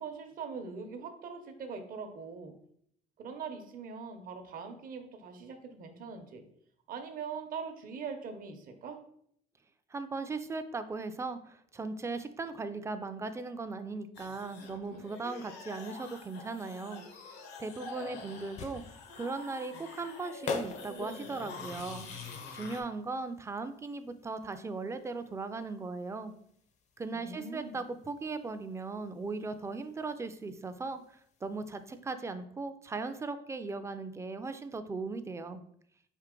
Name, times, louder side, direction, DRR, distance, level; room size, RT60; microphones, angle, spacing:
voice 1, 0.0-2.5 3.2-6.4 6.9-9.0 27.1-27.8, right 5 dB, 55° right, 6 dB, 0.8 m, -42 dB
voice 2, 9.9-17.0 17.6-18.8 19.1-22.1 22.5-26.3 27.0-31.0 31.4-35.6, right 3 dB, 15° right, 10 dB, 0.4 m, -38 dB
sound 1, 14.1-22.8, left 4 dB, 80° left, 0.8 m, -46 dB
sound 2, 18.3-32.0, left 5 dB, 45° left, 0.5 m, -47 dB
4.6 x 2.8 x 3.7 m, 0.67 s
cardioid pair, 110°, 17 cm